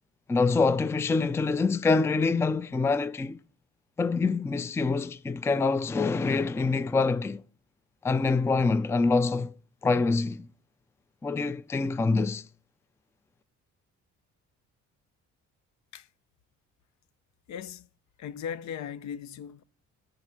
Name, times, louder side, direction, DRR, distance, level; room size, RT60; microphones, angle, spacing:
voice 1, 0.3-3.4 4.0-7.4 8.0-9.5 9.8-10.5 11.2-12.4, left 4 dB, 10° left, 0.3 m, -25 dB
voice 2, 17.5-17.9 18.2-19.6, left 8 dB, 70° left, 0.6 m, -38 dB
10.5 x 3.9 x 5.7 m
cardioid pair, 90°, 30 cm